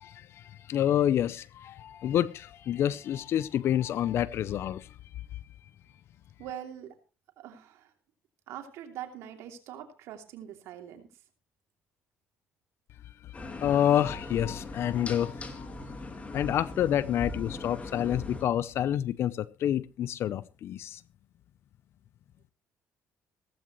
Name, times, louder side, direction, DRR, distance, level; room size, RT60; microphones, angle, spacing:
voice 1, 0.0-4.9 13.6-15.7 16.3-21.0, left 11 dB, 65° left, 0.6 m, -28 dB
voice 2, 6.4-7.0 7.4-7.9 8.5-11.1, right 10 dB, 80° right, 2.8 m, -43 dB
sound 1, 13.3-18.5, left 2 dB, 30° left, 2.7 m, -40 dB
16.5 x 15.0 x 3.1 m
cardioid pair, 90°, 5 cm